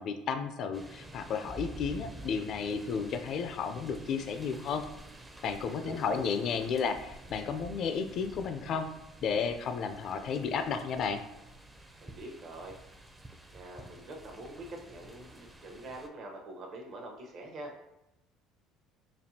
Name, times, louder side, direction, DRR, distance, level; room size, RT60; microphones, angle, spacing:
voice 1, 0.0-4.8 5.4-8.9 9.2-11.2, left 6 dB, 55° left, 8 dB, 0.4 m, -33 dB
sound 1, 0.7-16.1, right 1 dB, 15° right, 0.5 m, -49 dB
voice 2, 5.7-6.3 12.0-12.8 13.5-17.7, right 1 dB, 55° right, 1 dB, 0.8 m, -45 dB
5.2 x 2.3 x 2.7 m, 0.88 s
supercardioid pair, 90°, 0 cm